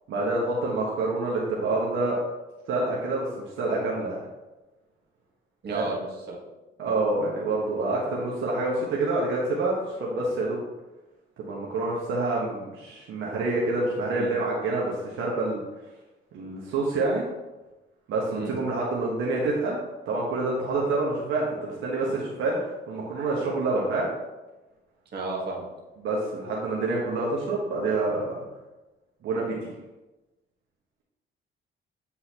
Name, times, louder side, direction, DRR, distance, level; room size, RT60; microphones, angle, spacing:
voice 1, 0.1-2.2 2.7-4.2 5.7-5.9 6.8-10.6 11.4-15.6 16.3-17.3 18.1-19.8 20.1-24.1 26.0-28.4 29.2-29.7, right 2 dB, 80° right, -4 dB, 1.2 m, -27 dB
voice 2, 5.6-6.4 14.1-14.3 18.3-18.5 25.1-25.7, right 2 dB, 55° right, -2 dB, 1.6 m, -33 dB
8.4 x 3.8 x 3.0 m, 1.1 s
cardioid pair, 90°, 20 cm